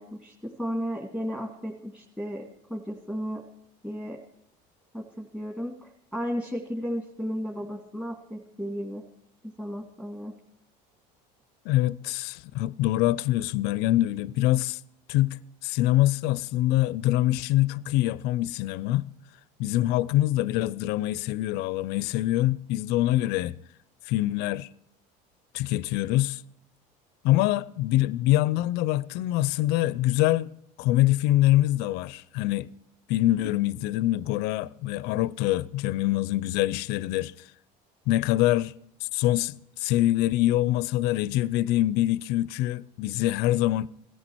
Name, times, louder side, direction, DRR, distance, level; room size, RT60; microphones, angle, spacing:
voice 1, 0.0-3.4 3.8-4.2 4.9-9.0 9.4-10.3, equal, 5° right, 2.1 m, -34 dB
voice 2, 11.6-14.8 15.1-19.1 19.6-23.5 24.1-24.7 25.5-26.4 27.2-30.5 30.8-32.7 33.1-37.3 38.1-38.7 39.0-43.9, left 15 dB, 65° left, 0.6 m, -24 dB
17.5 x 13.5 x 4.6 m
cardioid pair, 125°, 18 cm